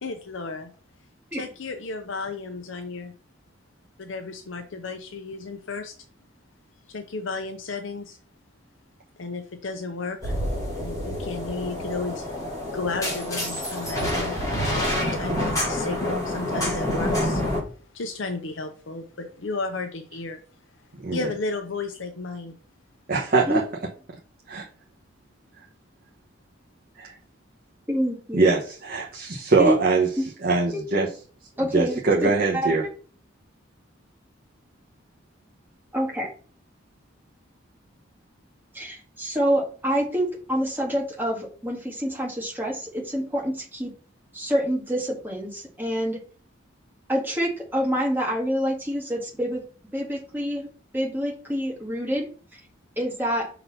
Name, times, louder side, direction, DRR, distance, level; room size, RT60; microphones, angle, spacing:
voice 1, 0.0-0.7 1.3-3.1 4.0-5.9 6.9-8.2 9.2-10.3 10.8-12.3 12.7-14.4 14.8-17.4 17.9-20.4 21.1-22.5, left 3 dB, 70° left, 6 dB, 0.7 m, -33 dB
sound 1, 10.2-17.6, left 1 dB, 15° left, 2.6 m, -27 dB
voice 2, 23.1-23.6 24.5-24.7 27.0-27.1 28.3-30.1 30.4-31.1 31.6-32.8, right 3 dB, 45° right, -3 dB, 1.1 m, -22 dB
voice 3, 27.9-28.4 29.6-29.8 30.2-30.3 31.6-32.7 35.9-36.3 38.7-43.9 44.3-46.2 47.1-49.6 49.9-50.7 50.9-52.3 53.0-53.5, equal, 10° right, -1 dB, 1.7 m, -27 dB
6.0 x 3.9 x 5.5 m, 0.41 s
head